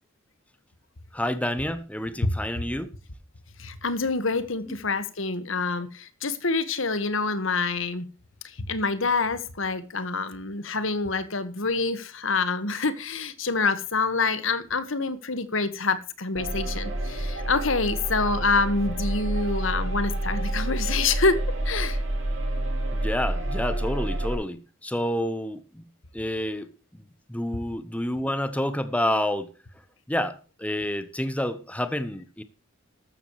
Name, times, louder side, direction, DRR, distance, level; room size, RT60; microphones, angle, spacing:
voice 1, 1.1-2.9 22.9-25.8 26.1-27.0 27.3-29.5 30.1-32.4, left 1 dB, 5° left, 1.0 m, -29 dB
voice 2, 3.6-8.0 8.4-21.4 21.6-22.0, left 3 dB, 65° left, 1.6 m, -26 dB
sound 1, 16.4-24.4, right 1 dB, 65° right, 6.0 m, -28 dB
13.5 x 13.0 x 3.2 m
head